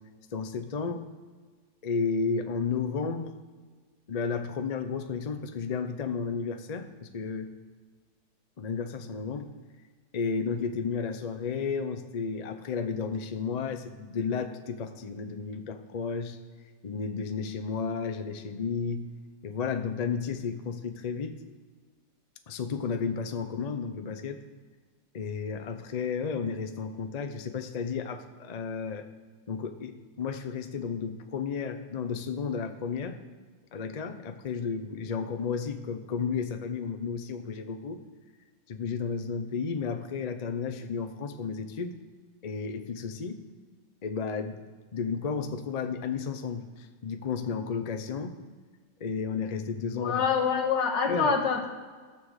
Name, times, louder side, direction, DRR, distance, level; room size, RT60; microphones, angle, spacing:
voice 1, 0.3-1.0 1.8-3.3 4.1-7.5 8.6-9.5 10.1-16.4 16.8-19.1 19.4-21.4 22.5-24.4 25.1-29.1 29.5-33.2 33.7-38.0 38.7-41.9 42.4-43.4 44.0-44.6 44.9-48.4 49.0-50.2 51.1-51.3, left 5 dB, 60° left, 7 dB, 0.4 m, -32 dB
voice 2, 49.9-51.7, left 6 dB, 85° left, 3 dB, 2.1 m, -26 dB
12.5 x 7.2 x 6.5 m, 1.5 s
omnidirectional pair, 1.9 m